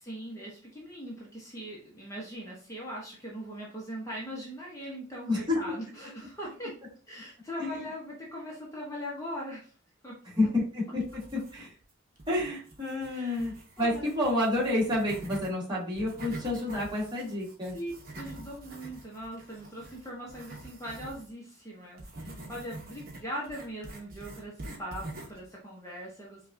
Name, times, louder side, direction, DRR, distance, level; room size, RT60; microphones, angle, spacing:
voice 1, 0.0-6.8 7.1-9.7 10.0-10.2 13.1-13.5 13.8-14.2 17.7-26.5, equal, 15° left, -4 dB, 0.9 m, -40 dB
voice 2, 5.3-5.7 7.6-7.8 10.3-11.7 12.3-17.7, left 1 dB, 25° right, -5 dB, 1.6 m, -29 dB
sound 1, 11.0-11.8 12.2-15.5 15.9-21.3 22.0-25.5, right 2 dB, 50° right, 0.9 m, -45 dB
5.2 x 2.4 x 2.6 m, 0.39 s
head